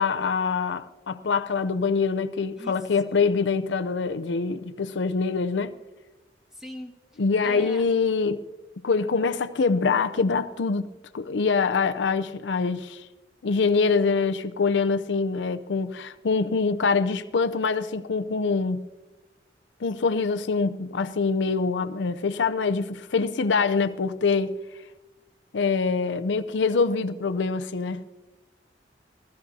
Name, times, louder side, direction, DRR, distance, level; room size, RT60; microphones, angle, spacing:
voice 1, 0.0-5.8 7.2-8.4 8.8-13.1 13.4-18.9 19.8-24.6 25.5-28.0, left 4 dB, 75° left, 0.5 m, -24 dB
voice 2, 6.5-7.8, left 1 dB, 5° right, 1.8 m, -42 dB
21.0 x 15.5 x 2.7 m
head